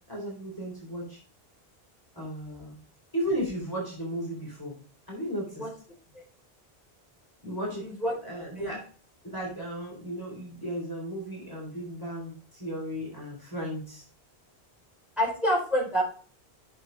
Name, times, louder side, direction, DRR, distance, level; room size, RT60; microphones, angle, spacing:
voice 1, 0.1-1.2 2.2-2.7 3.1-4.8 5.1-5.7 7.4-7.9 8.2-8.8 9.3-14.0, equal, 20° left, -5 dB, 3.7 m, -35 dB
voice 2, 7.8-8.1 8.6-8.7 15.2-16.0, equal, ahead, -5 dB, 4.0 m, -27 dB
7.5 x 7.1 x 3.4 m, 0.41 s
omnidirectional pair, 1.1 m